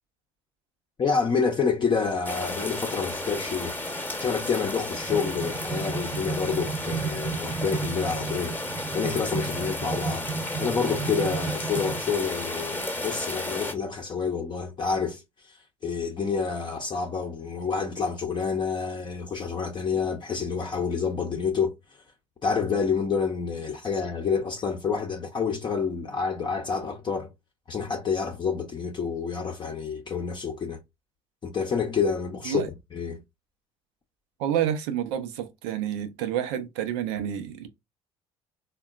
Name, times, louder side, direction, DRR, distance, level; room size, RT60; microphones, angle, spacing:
voice 1, 1.0-3.8 4.2-8.6 8.9-10.3 10.6-15.2 15.5-15.6 15.8-21.7 22.4-27.3 27.7-30.8 31.4-32.6 32.9-33.2, left 5 dB, 30° left, 0.6 m, -28 dB
sound 1, 2.2-13.7, left 1 dB, 10° left, 0.9 m, -33 dB
sound 2, 4.6-12.1, right 5 dB, 25° right, 0.6 m, -33 dB
voice 2, 34.4-37.7, right 10 dB, 75° right, 0.6 m, -29 dB
3.4 x 2.2 x 2.4 m
hypercardioid pair, 60°, 15 cm